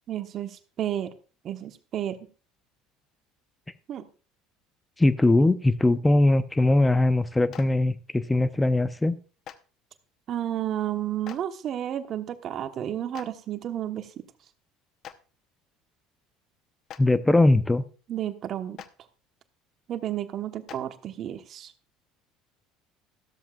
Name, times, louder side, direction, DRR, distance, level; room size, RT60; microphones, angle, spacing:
voice 1, 0.1-1.1 1.4-2.2 3.9-4.1 10.3-14.2 18.1-18.8 19.9-21.7, right 11 dB, 50° right, 9 dB, 1.1 m, -32 dB
voice 2, 5.0-9.2 17.0-17.8, left 2 dB, 10° left, 14 dB, 0.7 m, -21 dB
Clapping, 7.5-7.6 9.4-9.5 11.2-11.4 13.1-13.3 15.0-15.1 16.9-17.0 18.8-18.9 20.7-20.8, left 10 dB, 50° left, 0.9 m, -41 dB
14.0 x 13.0 x 2.4 m, 0.37 s
hypercardioid pair, 65°, 0 cm